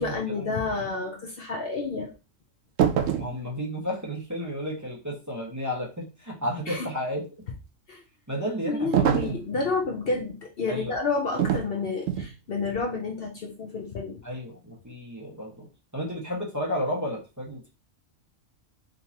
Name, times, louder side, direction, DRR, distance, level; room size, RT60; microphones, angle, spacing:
voice 1, 0.0-2.1 6.7-6.9 7.9-8.0 8.7-14.2, left 3 dB, 55° left, 1 dB, 0.9 m, -30 dB
sound 1, 2.8-3.4 8.9-9.5 11.4-11.7 12.1-12.3, right 9 dB, 75° right, 1.0 m, -24 dB
voice 2, 3.1-7.3 8.3-9.0 10.7-10.9 14.2-15.7 15.9-17.7, equal, 15° right, -5 dB, 1.2 m, -32 dB
5.1 x 2.9 x 2.9 m, 0.30 s
omnidirectional pair, 1.3 m